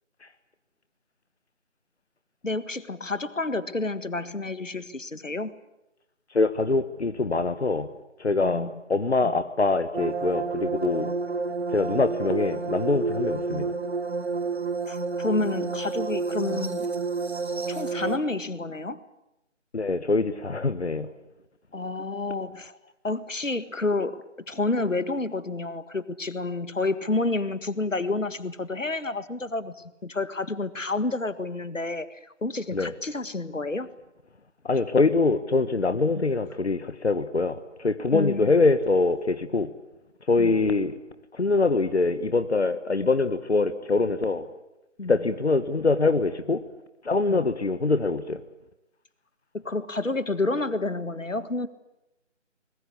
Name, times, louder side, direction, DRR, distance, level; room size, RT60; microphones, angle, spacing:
voice 1, 2.4-5.5 8.4-8.7 9.2-9.3 14.9-16.9 17.7-19.0 21.7-22.7 23.0-29.7 30.0-33.9 36.2-36.3 38.1-38.5 40.4-40.5 45.0-45.1 47.2-47.4 49.6-51.7, left 2 dB, 90° left, 14 dB, 1.8 m, -29 dB
voice 2, 6.3-7.9 8.2-11.1 11.7-13.7 19.7-21.1 32.7-32.9 34.6-39.7 40.3-40.9 41.3-44.5 45.0-46.6 47.0-48.4, left 3 dB, 60° left, 11 dB, 1.4 m, -24 dB
sound 1, 9.9-18.2, right 4 dB, 55° right, 2.1 m, -30 dB
25.0 x 21.5 x 8.6 m, 0.91 s
figure-of-eight pair, 170°, 37 cm